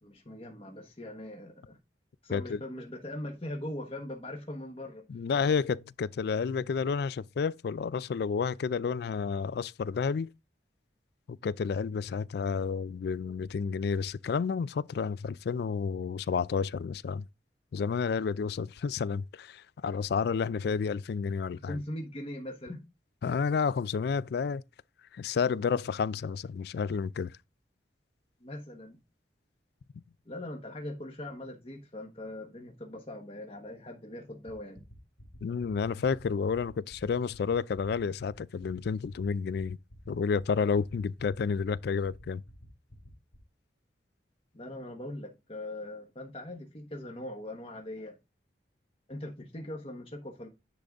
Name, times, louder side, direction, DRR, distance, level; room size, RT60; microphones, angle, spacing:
voice 1, 0.0-1.8 2.2-5.0 21.5-22.8 28.4-29.0 30.2-34.8 44.5-48.2 49.1-50.5, left 1 dB, 30° left, 1.3 m, -41 dB
voice 2, 2.3-2.6 5.1-10.3 11.3-17.3 17.7-21.8 23.2-24.6 25.1-27.4 35.4-39.8 40.1-42.4, left 5 dB, 60° left, 0.3 m, -30 dB
sound 1, 34.5-43.4, left 1 dB, 75° left, 2.8 m, -51 dB
10.0 x 3.8 x 3.5 m
head